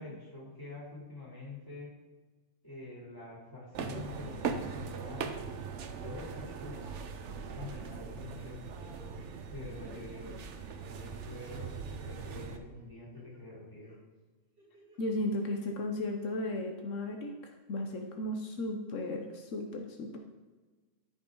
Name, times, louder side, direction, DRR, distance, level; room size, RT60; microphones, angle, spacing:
voice 1, 0.0-1.9 2.6-5.3 6.0-6.8 7.2-8.6 9.5-10.4 11.0-13.9, left 2 dB, 15° left, -6 dB, 3.3 m, -46 dB
sound 1, 3.7-12.6, right 6 dB, 70° right, 1.1 m, -40 dB
sound 2, 6.5-7.2 7.5-9.3 9.7-10.0 10.5-11.1 11.5-12.3 12.7-13.4 13.8-14.0 14.6-15.1 15.5-15.6, left 1 dB, 45° right, 3.2 m, -59 dB
voice 2, 15.0-20.2, left 1 dB, 80° left, 3 dB, 1.3 m, -35 dB
12.5 x 5.6 x 3.9 m, 1.3 s
omnidirectional pair, 1.3 m